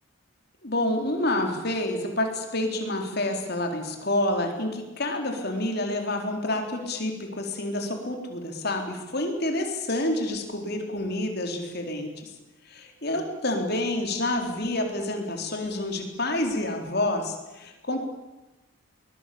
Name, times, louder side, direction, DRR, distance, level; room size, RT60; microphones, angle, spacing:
voice 1, 0.6-12.3 12.7-18.0, left 1 dB, 50° left, 3 dB, 4.1 m, -28 dB
23.5 x 21.0 x 8.7 m, 1.1 s
head